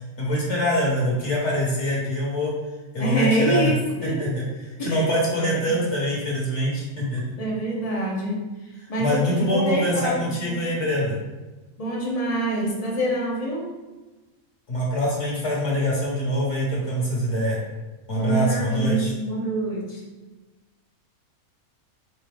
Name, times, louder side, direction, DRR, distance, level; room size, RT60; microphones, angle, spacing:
voice 1, 0.2-2.5 2.9-3.7 4.0-4.4 4.8-7.2 9.0-11.2 14.7-17.6 18.1-19.1, equal, 55° left, -5 dB, 1.4 m, -24 dB
voice 2, 3.0-3.7 4.0-4.3 4.8-5.1 5.4-5.6 7.4-10.8 11.8-13.7 18.1-20.0, right 2 dB, 35° left, -2 dB, 0.7 m, -26 dB
3.9 x 3.6 x 3.3 m, 1.2 s
omnidirectional pair, 1.5 m